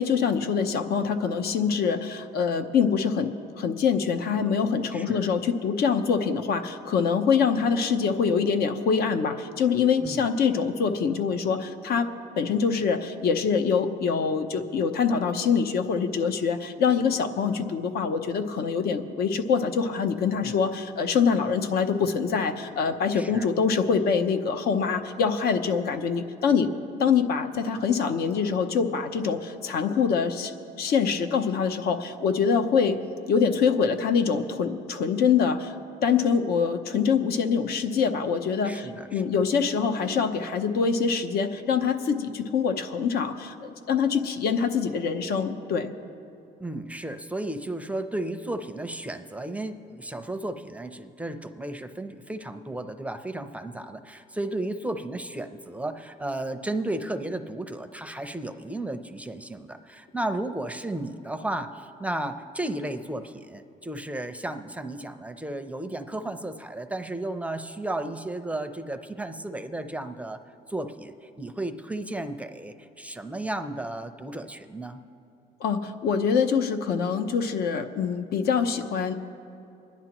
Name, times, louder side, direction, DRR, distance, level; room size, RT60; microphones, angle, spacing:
voice 1, 0.0-26.7 27.0-30.5 30.8-33.0 33.3-35.7 36.0-45.9 75.6-79.1, left 6 dB, 70° left, 7 dB, 0.9 m, -25 dB
voice 2, 23.1-23.5 38.6-39.2 46.6-70.4 70.7-75.0, right 1 dB, 10° right, 8 dB, 0.5 m, -34 dB
25.0 x 10.5 x 3.0 m, 2.7 s
cardioid pair, 110°, 17 cm